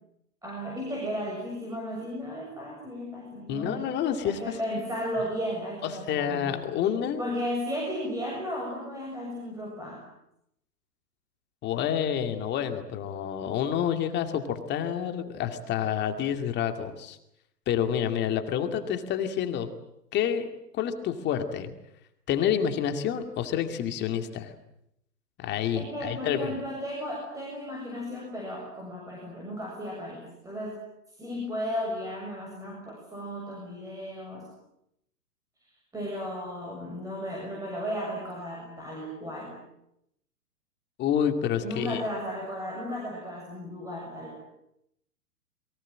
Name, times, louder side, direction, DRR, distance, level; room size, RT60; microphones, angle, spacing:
voice 1, 0.4-4.0 4.2-6.7 7.2-10.0 25.7-30.8 31.2-34.5 35.6-39.6 41.6-44.4, equal, 5° right, -2 dB, 7.4 m, -35 dB
voice 2, 3.5-4.8 5.8-7.2 11.6-17.2 17.7-19.7 20.1-21.7 22.3-24.5 25.4-26.6 41.0-42.0, left 9 dB, 20° left, 7 dB, 2.3 m, -28 dB
29.5 x 23.0 x 7.6 m, 0.78 s
figure-of-eight pair, 120°, 48 cm